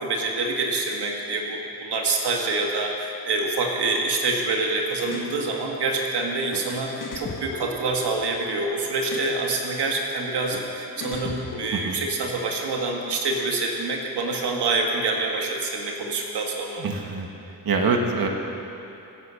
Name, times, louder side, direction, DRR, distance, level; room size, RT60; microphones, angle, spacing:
voice 1, 0.0-16.9, right 3 dB, 75° right, 0 dB, 1.8 m, -26 dB
sound 1, 5.0-5.3 6.5-6.6 7.0-8.4 9.0-9.3 10.5-10.6 11.0-12.1, left 3 dB, 50° left, 2.2 m, -36 dB
voice 2, 16.8-17.3 17.6-18.3, right 4 dB, 60° right, 2 dB, 1.8 m, -24 dB
26.0 x 8.6 x 6.3 m, 2.9 s
cardioid pair, 75°, 40 cm